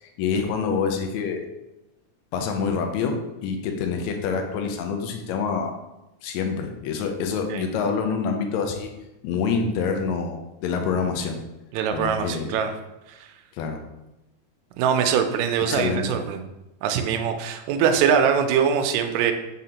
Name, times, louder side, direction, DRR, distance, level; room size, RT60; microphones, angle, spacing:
voice 1, 0.0-1.5 2.3-5.7 6.2-8.9 9.2-11.4 11.9-12.6 13.5-13.8 15.7-16.2, left 5 dB, 80° left, 4 dB, 1.8 m, -26 dB
voice 2, 11.7-12.7 13.1-13.3 14.8-16.5 16.8-19.3, right 7 dB, 80° right, 6 dB, 1.7 m, -22 dB
4.9 x 3.7 x 2.9 m, 0.96 s
omnidirectional pair, 3.4 m